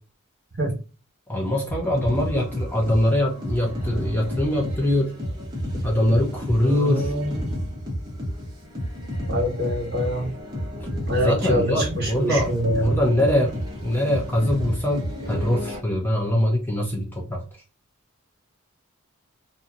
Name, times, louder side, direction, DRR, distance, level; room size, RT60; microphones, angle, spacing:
voice 1, 1.3-5.1 5.8-7.1 11.1-12.5 12.8-17.4, left 1 dB, 10° left, 0.6 m, -23 dB
sound 1, 1.7-15.8, equal, 20° right, 0.9 m, -31 dB
voice 2, 6.6-7.5 9.3-10.3 11.1-13.0, equal, 45° right, 1.3 m, -25 dB
2.7 x 2.6 x 2.4 m
head